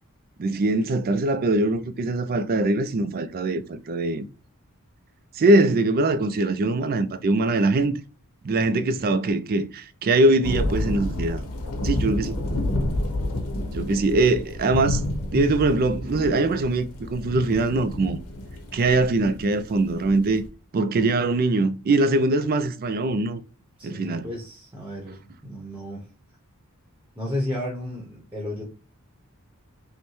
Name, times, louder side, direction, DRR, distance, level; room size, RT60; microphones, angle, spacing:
voice 1, 0.4-4.3 5.3-8.0 8.4-11.4 11.8-12.4 13.7-15.0 15.3-18.2 18.7-20.4 20.7-23.4 23.8-24.3, right 2 dB, 40° right, 0.4 m, -22 dB
sound 1, 10.4-20.5, left 1 dB, 90° left, 0.9 m, -30 dB
voice 2, 23.8-26.0 27.2-28.6, left 1 dB, 10° right, 0.9 m, -33 dB
5.2 x 2.2 x 3.0 m
head